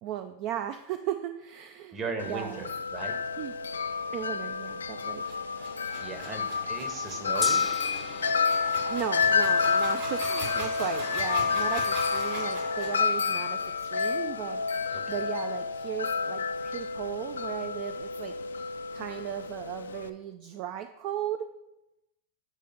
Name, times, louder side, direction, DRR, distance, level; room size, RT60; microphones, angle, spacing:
voice 1, 0.0-2.7 3.4-3.5 4.1-5.2 8.9-18.3 18.9-21.5, right 11 dB, 50° right, 9 dB, 0.4 m, -36 dB
voice 2, 1.9-3.1 6.0-7.7 14.9-15.0, right 4 dB, 35° right, 5 dB, 1.3 m, -37 dB
Wind chime, 2.2-20.1, left 5 dB, 85° left, 0.3 m, -29 dB
sound 1, 5.2-13.0, right 1 dB, 70° right, 2.9 m, -41 dB
Gong, 7.4-17.6, left 4 dB, 15° left, 0.4 m, -45 dB
8.2 x 3.4 x 5.4 m, 0.90 s
hypercardioid pair, 95°, 0 cm